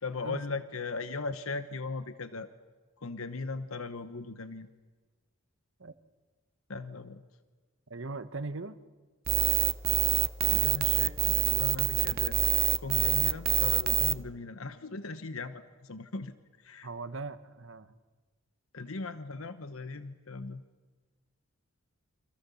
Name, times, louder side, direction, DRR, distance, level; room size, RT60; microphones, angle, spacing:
voice 1, 0.0-2.5 3.0-4.7 6.7-7.2 10.5-12.4 12.8-16.9 18.7-20.6, left 3 dB, 80° left, 11 dB, 1.1 m, -38 dB
voice 2, 7.9-8.8 16.8-17.9, right 3 dB, 65° right, 12 dB, 1.2 m, -39 dB
sound 1, 9.3-14.1, right 11 dB, 45° right, 0.8 m, -26 dB
29.0 x 26.5 x 7.1 m, 1.3 s
head